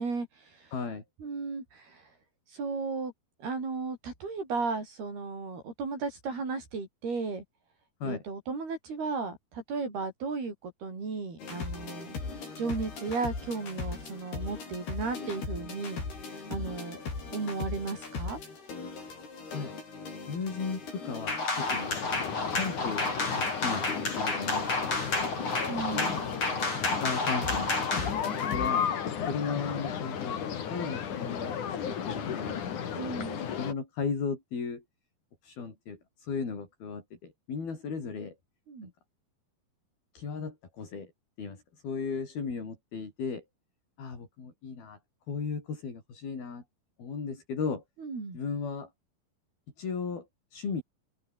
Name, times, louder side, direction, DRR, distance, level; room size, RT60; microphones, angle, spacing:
voice 1, 0.0-0.7 1.2-2.1 2.5-3.1 3.4-7.4 8.0-12.2 12.6-17.0 17.3-18.4 25.7-26.1 32.9-33.4 38.7-38.9 48.0-48.4, right 4 dB, 80° right, 9.8 m, -35 dB
voice 2, 0.7-1.0 8.0-8.2 19.5-19.7 20.3-22.0 22.5-23.1 23.3-25.0 25.9-26.3 26.7-28.1 28.5-28.9 29.2-30.4 30.7-33.2 33.5-34.8 35.4-38.4 38.8-38.9 40.1-41.1 41.4-43.4 44.0-45.0 45.3-46.6 47.0-47.8 48.3-48.9 49.8-50.3 50.5-50.8, left 5 dB, 70° left, 7.7 m, -36 dB
sound 1, 11.4-28.7, left 4 dB, 90° left, 10.0 m, -40 dB
sound 2, 21.3-28.1, left 3 dB, 40° left, 8.8 m, -31 dB
sound 3, 21.6-33.7, left 8 dB, 55° left, 3.8 m, -34 dB
open air
omnidirectional pair, 4.4 m